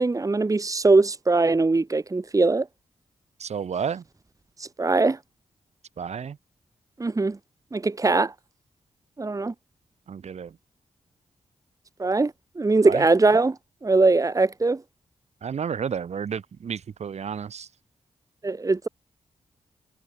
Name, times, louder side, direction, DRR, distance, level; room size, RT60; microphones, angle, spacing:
voice 1, 0.0-2.7 4.6-5.2 7.0-7.4 7.7-8.3 9.2-9.5 12.0-12.3 12.6-13.5 13.8-14.8 18.4-18.9, right 3 dB, 30° right, 1.6 m, -21 dB
voice 2, 3.4-4.0 6.0-6.4 10.1-10.6 12.8-13.0 15.4-17.7, right 7 dB, 75° right, 3.2 m, -31 dB
cardioid pair, 60°, 12 cm